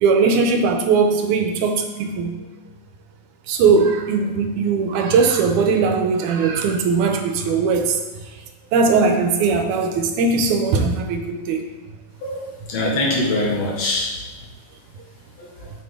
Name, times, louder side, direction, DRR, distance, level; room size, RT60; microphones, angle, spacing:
voice 1, 0.0-2.4 3.5-8.0 8.7-11.6, right 4 dB, 80° right, 5 dB, 2.2 m, -19 dB
voice 2, 12.2-14.1 15.4-15.7, left 2 dB, 65° left, -3 dB, 2.6 m, -23 dB
8.9 x 6.2 x 3.7 m, 1.2 s
omnidirectional pair, 3.5 m